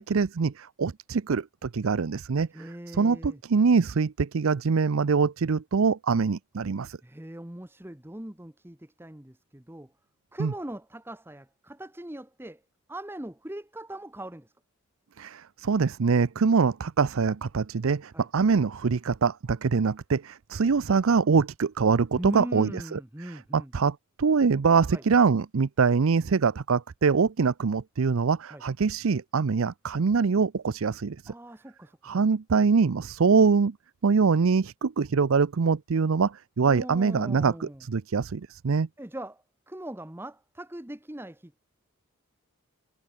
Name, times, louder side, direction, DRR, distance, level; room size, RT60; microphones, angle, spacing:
voice 1, 0.0-7.0 10.4-10.5 15.2-31.3 32.0-33.7 34.0-38.9, right 5 dB, 70° right, 0.5 m, -24 dB
voice 2, 2.5-3.4 7.0-9.9 10.3-12.6 12.9-14.5 18.1-18.3 22.2-23.7 24.9-25.0 28.5-28.6 31.3-32.2 36.6-37.8 39.0-41.6, right 1 dB, 10° right, 0.9 m, -40 dB
head